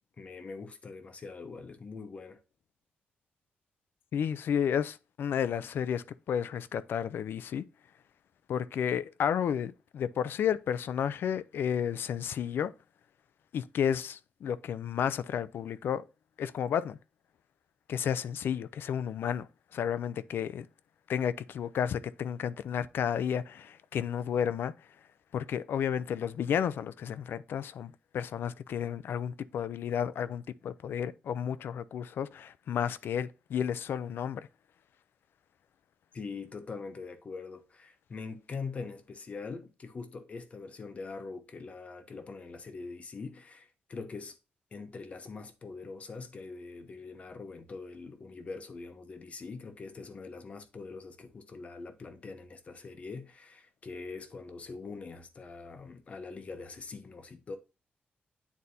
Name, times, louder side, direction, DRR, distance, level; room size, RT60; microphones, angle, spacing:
voice 1, 0.2-2.4 36.1-44.4 44.7-57.6, left 4 dB, 35° left, 0.9 m, -43 dB
voice 2, 4.1-7.6 8.5-12.7 13.5-16.0 16.4-17.0 17.9-19.5 19.7-20.7 21.1-24.7 25.3-34.5, left 8 dB, 70° left, 0.4 m, -32 dB
9.5 x 4.1 x 2.7 m
wide cardioid pair, 160°, 4 cm